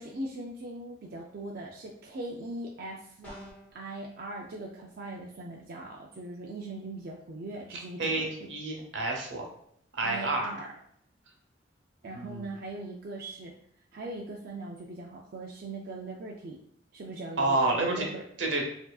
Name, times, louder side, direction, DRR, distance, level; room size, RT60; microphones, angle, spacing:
voice 1, 0.0-3.4 3.7-8.5 10.0-10.7 12.0-13.5 13.9-16.6 16.9-18.2, right 2 dB, 55° right, -1 dB, 0.4 m, -40 dB
sound 1, 3.2-3.8, equal, 10° left, 1.0 m, -46 dB
voice 2, 7.7-9.5 9.9-10.5 12.1-12.5 17.4-18.1 18.4-18.6, right 2 dB, 80° right, 1 dB, 0.9 m, -29 dB
4.5 x 2.7 x 2.3 m, 0.67 s
head